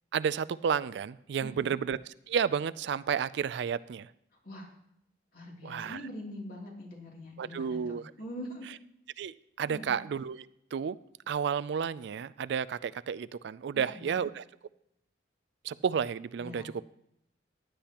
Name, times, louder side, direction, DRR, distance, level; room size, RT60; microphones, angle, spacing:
voice 1, 0.1-2.0 2.3-4.1 5.6-6.0 7.4-8.1 9.2-10.4 10.7-11.0 11.3-14.4 15.6-16.8, right 7 dB, 65° right, 17 dB, 0.3 m, -31 dB
voice 2, 1.4-1.8 4.4-4.7 5.3-8.7 9.7-10.0 13.7-14.2 16.4-16.7, left 1 dB, 55° left, -1 dB, 3.0 m, -43 dB
15.5 x 10.0 x 2.9 m, 0.76 s
head